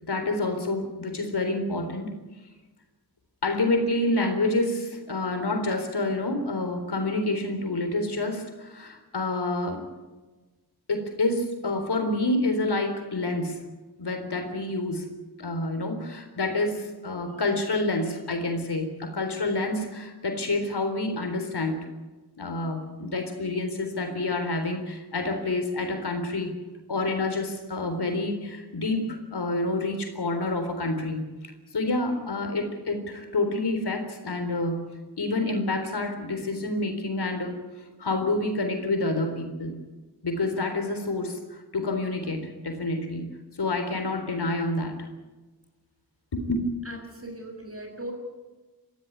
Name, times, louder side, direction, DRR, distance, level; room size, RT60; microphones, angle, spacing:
voice 1, 0.0-2.1 3.4-9.9 10.9-13.6 14.0-15.1 15.4-21.8 22.4-26.5 26.9-31.3 31.7-34.8 35.2-37.6 38.0-39.7 40.2-43.3 43.6-45.1 46.3-46.6, left 2 dB, 75° left, 6 dB, 3.9 m, -28 dB
voice 2, 46.8-48.1, right 1 dB, 35° right, 2 dB, 6.6 m, -39 dB
22.5 x 15.5 x 9.6 m, 1.2 s
wide cardioid pair, 65°, 40 cm